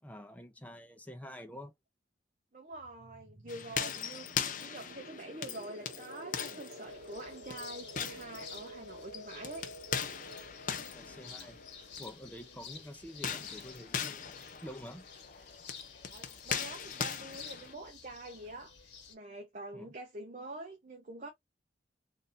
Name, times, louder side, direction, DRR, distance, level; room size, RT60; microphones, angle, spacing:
voice 1, 0.0-1.7 10.7-11.6 12.0-14.3 14.6-15.1 19.7-19.9, equal, 10° left, 0.7 m, -48 dB
voice 2, 2.5-9.6 16.1-21.3, right 2 dB, 45° right, 0.8 m, -46 dB
sound 1, 2.7-13.2, right 1 dB, 65° right, 1.4 m, -51 dB
sound 2, 3.5-12.1 13.1-17.7, left 7 dB, 45° left, 0.6 m, -40 dB
sound 3, 6.9-19.1, left 6 dB, 85° left, 1.2 m, -52 dB
4.0 x 2.7 x 2.6 m
head